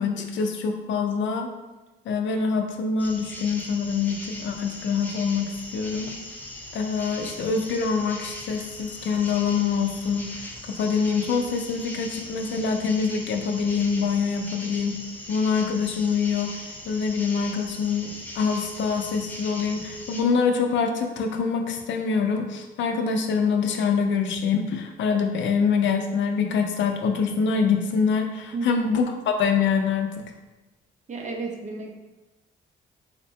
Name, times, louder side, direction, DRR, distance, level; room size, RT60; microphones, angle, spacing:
voice 1, 0.0-1.5 2.1-6.1 6.7-15.0 15.3-30.3, left 5 dB, 70° left, 4 dB, 0.5 m, -25 dB
sound 1, 3.0-20.2, left 1 dB, 10° left, 0.6 m, -39 dB
voice 2, 28.5-28.9 31.1-31.9, right 3 dB, 35° right, 2 dB, 0.6 m, -32 dB
4.1 x 2.2 x 2.7 m, 1.1 s
cardioid pair, 90°, 20 cm